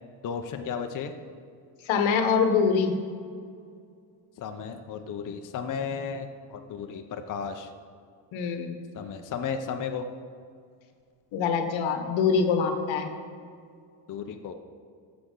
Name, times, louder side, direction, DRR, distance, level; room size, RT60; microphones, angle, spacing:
voice 1, 0.2-1.1 4.4-7.7 8.9-10.0 14.1-14.5, left 6 dB, 45° left, 5 dB, 0.7 m, -34 dB
voice 2, 1.9-2.9 8.3-8.8 11.3-13.1, left 6 dB, 80° left, 6 dB, 1.2 m, -24 dB
15.0 x 6.0 x 3.8 m, 2.2 s
cardioid pair, 105°, 46 cm